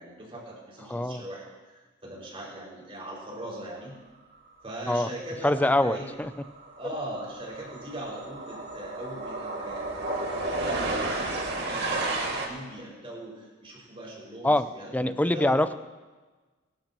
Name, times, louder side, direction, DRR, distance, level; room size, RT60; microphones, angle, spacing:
voice 1, 0.0-4.0 4.6-6.1 6.8-15.7, right 1 dB, 30° right, -5 dB, 5.6 m, -40 dB
voice 2, 0.9-1.2 4.9-5.1 5.4-6.3 14.4-14.7 14.9-15.7, left 1 dB, 10° left, 12 dB, 0.4 m, -24 dB
sound 1, 5.7-5.9 6.2-12.5, right 2 dB, 55° right, 2.2 m, -32 dB
26.0 x 12.0 x 3.0 m, 1.3 s
head